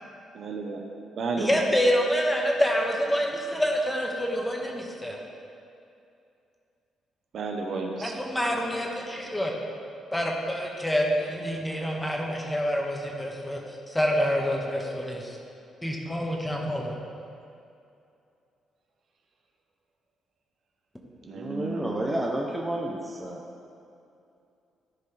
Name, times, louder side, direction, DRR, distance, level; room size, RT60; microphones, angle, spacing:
voice 1, 0.3-0.8 1.2-1.6 7.3-8.1 21.3-22.2, right 4 dB, 60° right, 2 dB, 1.0 m, -32 dB
voice 2, 1.4-5.2 8.0-9.5 10.1-13.6 13.9-15.4 15.8-17.0, equal, 10° left, -1 dB, 1.3 m, -27 dB
voice 3, 21.2-23.4, right 1 dB, 10° right, -2 dB, 0.8 m, -31 dB
13.5 x 5.2 x 3.4 m, 2.6 s
cardioid pair, 90°, 0 cm